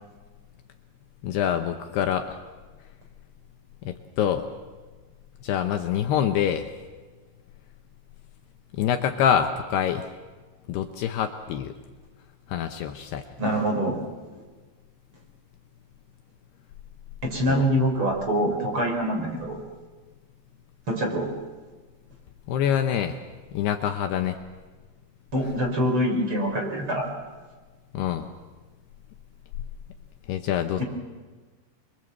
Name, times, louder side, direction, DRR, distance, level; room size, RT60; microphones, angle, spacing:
voice 1, 1.2-2.4 3.8-4.5 5.4-6.7 8.7-10.1 10.7-11.7 12.5-13.3 17.5-17.6 22.5-23.2 23.5-24.4 27.9-28.3 30.3-30.8, left 9 dB, 75° left, 6 dB, 2.8 m, -25 dB
voice 2, 13.4-14.0 17.2-19.6 20.9-21.3 25.3-27.1 30.8-30.9, equal, 30° right, 3 dB, 4.5 m, -25 dB
27.5 x 23.0 x 7.9 m, 1.3 s
omnidirectional pair, 5.3 m